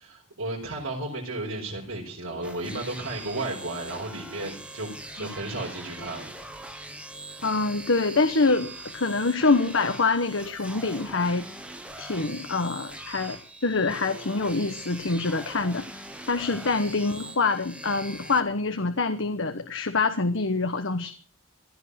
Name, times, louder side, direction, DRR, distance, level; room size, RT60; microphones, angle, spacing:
voice 1, 0.0-6.3 16.5-16.7, right 2 dB, 80° right, -4 dB, 4.7 m, -34 dB
sound 1, 2.4-18.4, right 1 dB, 5° right, 1.4 m, -42 dB
voice 2, 7.4-11.5 12.0-21.1, left 3 dB, 65° left, 8 dB, 1.1 m, -25 dB
16.5 x 12.5 x 6.4 m, 0.42 s
head